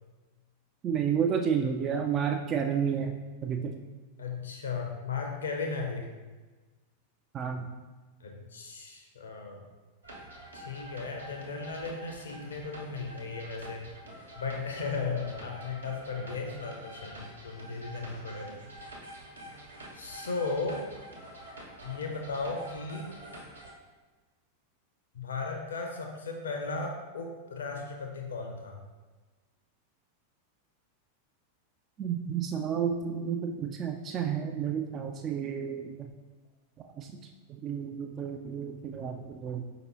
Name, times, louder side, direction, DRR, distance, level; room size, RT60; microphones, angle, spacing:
voice 1, 0.8-3.2 3.4-3.8 7.3-7.7 32.0-36.1 36.8-37.1 37.5-39.6, right 7 dB, 30° right, 4 dB, 0.3 m, -31 dB
voice 2, 4.2-6.1 8.2-9.7 10.5-13.9 14.4-18.6 19.9-20.9 21.8-23.1 25.1-28.8, left 4 dB, 65° left, 2 dB, 0.7 m, -36 dB
sound 1, 10.0-23.7, right 1 dB, 80° right, 1.0 m, -47 dB
5.1 x 2.9 x 3.0 m, 1.3 s
figure-of-eight pair, 90°, 0 cm